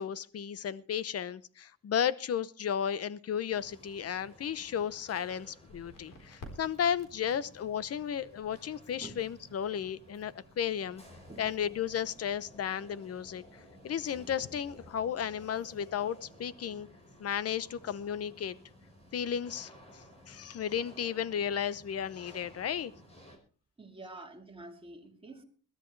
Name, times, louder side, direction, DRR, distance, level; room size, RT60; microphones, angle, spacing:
voice 1, 0.0-11.0 11.4-16.9 17.2-18.6 19.1-22.9, left 8 dB, 50° left, 0.8 m, -34 dB
sound 1, 3.5-23.4, equal, 20° left, 5.0 m, -55 dB
Crackle, 5.6-12.3, left 1 dB, 75° left, 4.1 m, -56 dB
voice 2, 23.8-25.4, right 2 dB, 15° right, 3.0 m, -47 dB
21.5 x 13.5 x 3.3 m
cardioid pair, 140°, 32 cm